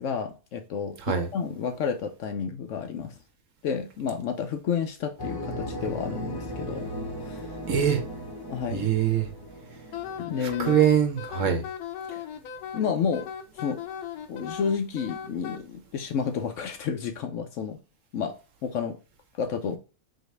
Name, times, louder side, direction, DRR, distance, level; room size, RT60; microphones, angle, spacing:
voice 1, 0.0-3.1 3.6-6.9 7.2-7.5 8.5-8.9 10.2-10.8 11.4-11.6 12.1-12.3 12.7-13.3 13.5-13.8 14.3-17.8 18.1-18.4 18.6-19.0 19.4-19.8, left 6 dB, 65° left, 0.9 m, -30 dB
sound 1, 5.2-10.7, equal, 25° left, 0.5 m, -37 dB
voice 2, 7.7-8.0 8.7-9.3 10.4-11.6, right 9 dB, 60° right, 1.1 m, -23 dB
Wind instrument woodwind instrument, 9.9-15.6, left 8 dB, 85° left, 1.1 m, -38 dB
4.0 x 3.0 x 3.2 m
omnidirectional pair, 1.6 m